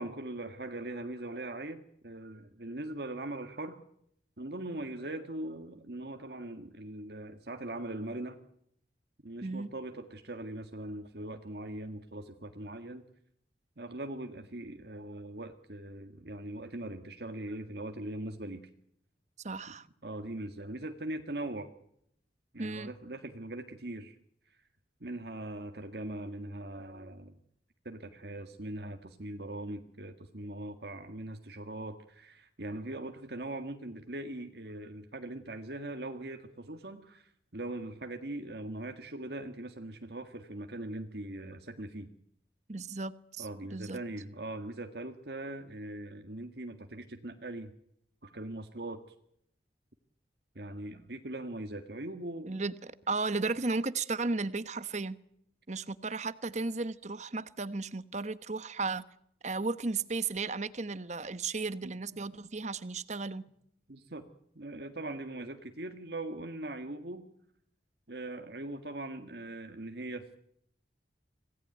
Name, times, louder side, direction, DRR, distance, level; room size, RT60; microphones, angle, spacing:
voice 1, 0.0-3.8 4.4-8.4 9.2-13.0 13.8-18.6 20.0-21.7 22.5-24.2 24.5-24.6 25.0-27.3 27.9-42.1 43.4-47.7 48.2-49.0 50.6-52.5 61.8-62.3 63.9-64.3 64.6-67.2 68.1-70.4, right 1 dB, 60° right, 5 dB, 1.9 m, -41 dB
voice 2, 9.4-9.7 19.4-19.9 22.6-22.9 42.7-43.5 43.7-44.0 52.5-55.2 55.7-59.0 59.4-63.4, right 3 dB, 40° right, 14 dB, 1.1 m, -34 dB
26.5 x 18.5 x 9.2 m, 0.72 s
head